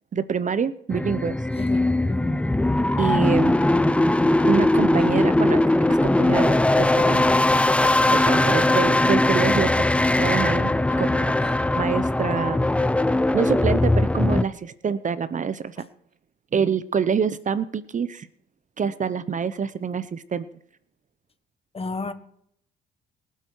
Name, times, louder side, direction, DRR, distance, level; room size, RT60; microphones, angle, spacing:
voice 1, 0.1-1.4 3.0-3.5 4.4-5.6 5.9-7.3 8.1-9.7 10.2-10.7 11.0-11.3 11.7-12.7 13.3-15.9 16.5-18.3 18.8-20.5, right 6 dB, 40° right, 14 dB, 0.8 m, -26 dB
sound 1, 0.9-14.4, left 1 dB, 5° left, 0.5 m, -20 dB
voice 2, 1.5-2.4 21.7-22.1, left 3 dB, 30° left, 11 dB, 1.5 m, -32 dB
23.5 x 8.1 x 4.7 m, 0.68 s
cardioid pair, 90°, 20 cm